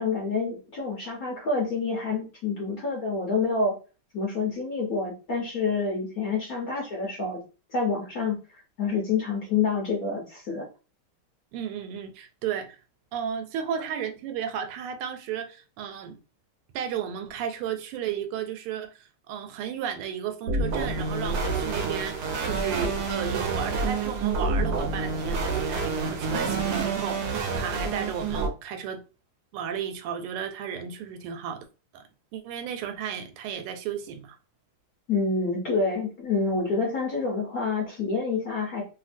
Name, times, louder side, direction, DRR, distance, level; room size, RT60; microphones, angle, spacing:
voice 1, 0.0-3.7 4.1-7.4 7.7-8.4 8.8-10.6 35.1-38.8, left 4 dB, 60° left, 1.0 m, -27 dB
voice 2, 11.5-12.8 13.1-16.2 16.7-29.0 29.5-31.6 31.9-32.0 32.3-34.4, right 8 dB, 85° right, 1.5 m, -34 dB
sound 1, 20.5-28.5, right 4 dB, 70° right, 0.9 m, -28 dB
3.2 x 2.6 x 2.5 m
omnidirectional pair, 2.4 m